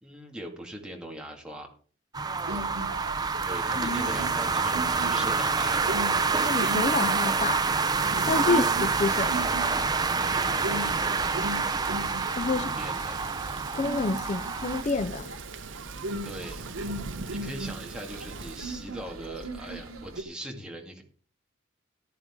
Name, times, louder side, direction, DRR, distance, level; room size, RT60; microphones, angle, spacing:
voice 1, 0.0-1.7 3.4-5.8 8.5-8.7 10.2-10.9 12.5-13.2 16.2-16.6 17.3-21.0, right 1 dB, 5° right, 2.0 m, -40 dB
sound 1, 2.1-14.8, right 4 dB, 20° right, 0.6 m, -27 dB
sound 2, 2.4-20.2, right 2 dB, 90° right, 1.2 m, -38 dB
voice 2, 3.8-4.2 6.4-7.7 8.2-9.6 12.4-12.8 13.7-15.4, left 3 dB, 35° left, 0.4 m, -29 dB
Thunder / Rain, 7.8-18.8, right 4 dB, 60° right, 0.8 m, -42 dB
14.0 x 10.0 x 3.7 m
head